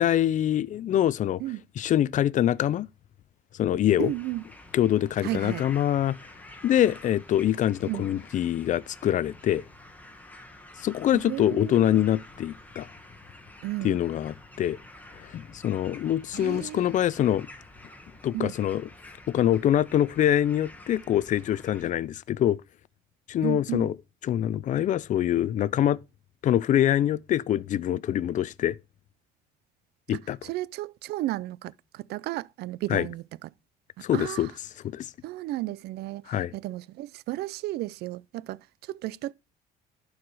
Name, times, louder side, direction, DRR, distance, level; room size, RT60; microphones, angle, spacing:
voice 1, 0.0-1.4 1.8-2.9 3.5-4.1 4.7-6.1 6.6-9.6 10.8-12.9 13.8-14.8 15.2-17.5 18.2-18.9 19.3-22.6 23.3-24.0 24.2-26.0 26.4-28.8 30.1-30.4 32.9-33.1 34.0-34.5 34.8-35.1 36.3-36.5, left 11 dB, 50° left, 0.5 m, -24 dB
sound 1, 4.0-21.8, left 1 dB, 10° left, 1.7 m, -49 dB
voice 2, 4.0-4.4 5.2-5.6 7.8-8.0 11.1-12.0 13.6-14.0 16.3-17.0 18.3-18.5 23.4-23.9 30.1-33.5 34.0-34.5 35.2-39.3, right 16 dB, 75° right, 0.4 m, -34 dB
11.5 x 4.8 x 4.7 m
cardioid pair, 110°, 17 cm